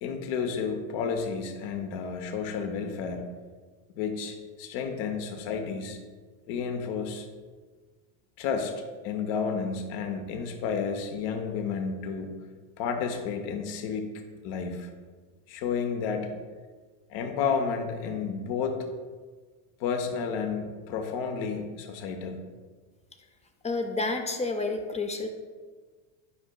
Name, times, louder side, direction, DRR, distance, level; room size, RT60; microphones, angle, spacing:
voice 1, 0.0-3.3 4.0-6.0 6.5-7.3 8.4-12.3 12.8-14.9 15.5-16.4 17.1-18.8 19.8-22.4, left 6 dB, 65° left, 5 dB, 1.0 m, -31 dB
voice 2, 23.6-25.3, left 3 dB, 15° left, 5 dB, 0.4 m, -29 dB
9.3 x 4.9 x 2.3 m, 1.4 s
supercardioid pair, 105°, 47 cm